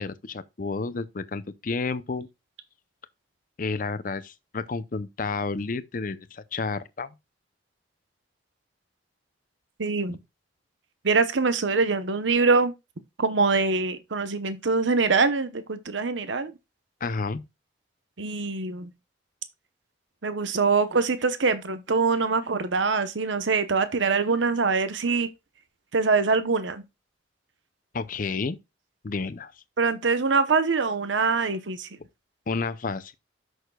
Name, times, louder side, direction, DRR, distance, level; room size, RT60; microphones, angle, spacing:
voice 1, 0.0-2.3 3.6-7.1 10.1-10.2 17.0-17.4 27.9-28.6 29.0-29.5 32.5-33.1, left 4 dB, 45° left, 0.6 m, -31 dB
voice 2, 9.8-10.2 11.0-12.7 13.2-16.5 18.2-18.9 20.2-25.3 25.9-26.8 29.8-31.9, right 4 dB, 75° right, 0.9 m, -24 dB
12.5 x 6.4 x 2.3 m
head